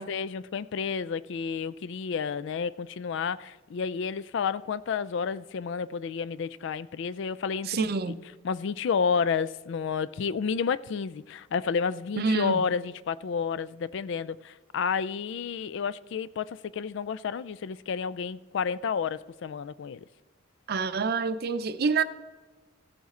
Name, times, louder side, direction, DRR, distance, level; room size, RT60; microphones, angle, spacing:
voice 1, 0.0-8.1 8.4-20.0, left 6 dB, 65° left, 0.3 m, -31 dB
voice 2, 7.7-8.1 12.2-12.7 20.7-22.0, right 4 dB, 50° right, 0.5 m, -27 dB
15.5 x 7.2 x 3.7 m
head